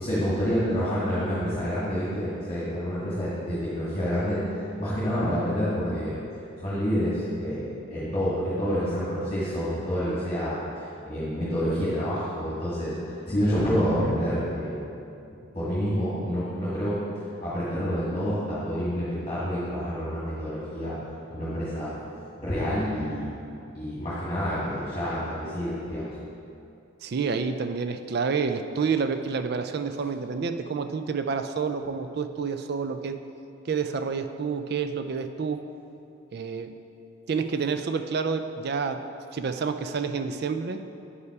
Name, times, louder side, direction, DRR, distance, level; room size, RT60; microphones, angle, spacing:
voice 1, 0.0-4.4 4.8-6.2 6.6-10.6 11.0-14.8 15.5-17.0 17.4-21.0 21.3-22.0 22.4-23.3 23.7-26.1, equal, 25° left, -10 dB, 1.6 m, -28 dB
voice 2, 27.0-33.2 33.7-35.7 36.3-36.7 37.3-39.0 39.3-40.8, right 5 dB, 50° right, 9 dB, 0.4 m, -29 dB
8.1 x 5.6 x 4.7 m, 2.7 s
head